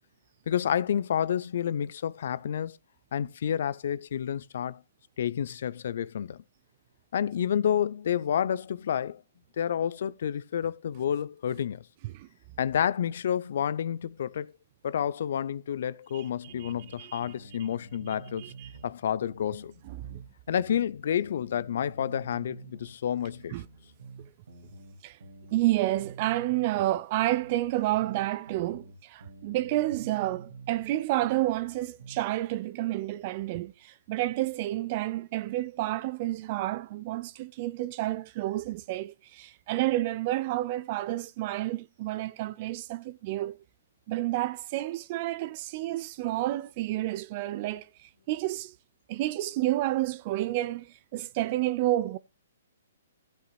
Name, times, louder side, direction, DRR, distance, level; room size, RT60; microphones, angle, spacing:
voice 1, 0.5-2.8 3.1-4.8 5.2-6.4 7.1-9.2 9.6-11.8 12.6-14.5 14.8-18.5 18.8-19.7 20.5-23.5, left 9 dB, 60° left, 0.5 m, -29 dB
sound 1, 16.5-18.9 19.2-22.9 23.2-26.9 27.2-30.9 31.2-32.3, right 3 dB, 75° right, 4.0 m, -49 dB
voice 2, 16.6-17.3 18.4-18.7 19.8-20.2 23.5-23.7 25.0-25.2 25.5-43.6 44.1-48.8 49.1-52.2, right 16 dB, 40° right, 0.5 m, -30 dB
15.5 x 8.1 x 2.3 m
hypercardioid pair, 130°, 0 cm